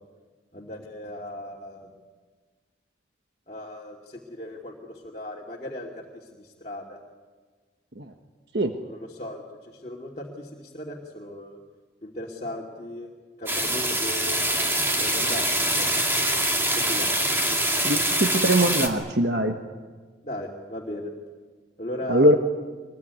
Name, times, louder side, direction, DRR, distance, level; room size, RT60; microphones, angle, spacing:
voice 1, 0.5-1.9 3.5-7.0 8.8-11.6 12.0-13.1 13.4-14.4 15.0-16.0 16.7-17.1 20.2-21.1 21.8-22.3, left 1 dB, 35° left, -2 dB, 2.7 m, -37 dB
sound 1, 13.5-18.9, right 1 dB, 10° right, 2.4 m, -24 dB
voice 2, 17.8-19.6 22.1-22.4, right 1 dB, 60° right, 5 dB, 1.4 m, -21 dB
25.0 x 21.5 x 9.7 m, 1.4 s
head